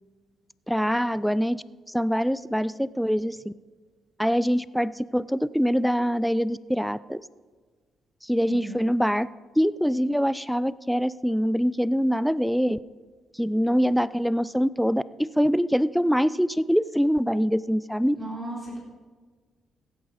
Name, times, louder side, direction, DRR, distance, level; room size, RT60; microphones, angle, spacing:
voice 1, 0.7-3.5 4.2-7.2 8.2-9.3 9.6-12.8 13.3-18.2, equal, ahead, 18 dB, 0.3 m, -24 dB
voice 2, 18.0-18.8, right 1 dB, 20° right, -5 dB, 4.1 m, -36 dB
16.0 x 8.8 x 4.0 m, 1.5 s
cardioid pair, 90°, 0 cm